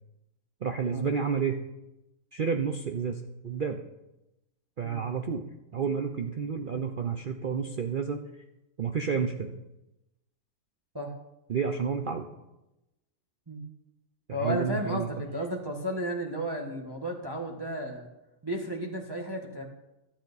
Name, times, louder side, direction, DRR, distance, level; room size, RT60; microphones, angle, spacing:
voice 1, 0.6-1.6 2.3-3.8 4.8-5.5 5.7-8.2 8.8-9.5 11.5-12.3 14.3-15.1, right 6 dB, 50° right, 5 dB, 0.6 m, -30 dB
voice 2, 14.3-18.1 18.4-19.6, right 1 dB, 15° right, 0 dB, 1.2 m, -33 dB
13.0 x 8.7 x 4.1 m, 0.95 s
omnidirectional pair, 1.6 m